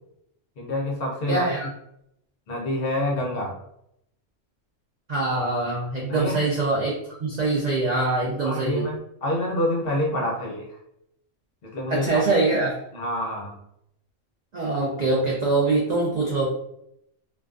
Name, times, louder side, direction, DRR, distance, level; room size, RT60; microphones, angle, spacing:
voice 1, 0.6-1.6 2.5-3.5 6.1-6.4 8.4-10.8 11.6-12.2 12.9-13.6, left 1 dB, 60° left, -1 dB, 0.7 m, -27 dB
voice 2, 1.3-1.7 5.1-7.0 7.2-8.8 11.9-12.8 14.5-16.5, right 3 dB, 70° right, -4 dB, 0.4 m, -23 dB
2.3 x 2.2 x 2.4 m, 0.77 s
omnidirectional pair, 1.3 m